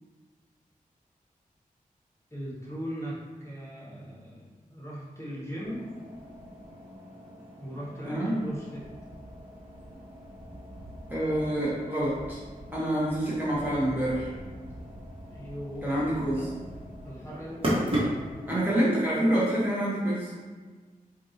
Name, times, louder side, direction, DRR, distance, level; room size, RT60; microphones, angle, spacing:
voice 1, 2.3-5.8 7.6-8.8 15.3-15.9 16.4-16.5 17.0-17.6, equal, 20° left, -7 dB, 1.4 m, -39 dB
sound 1, 5.6-18.5, equal, 35° right, 1.3 m, -37 dB
voice 2, 8.0-8.4 11.1-12.4 12.7-14.3 15.8-16.4 18.5-20.3, right 1 dB, 10° right, -8 dB, 1.0 m, -27 dB
4.5 x 2.6 x 2.7 m, 1.4 s
cardioid pair, 55°, 15 cm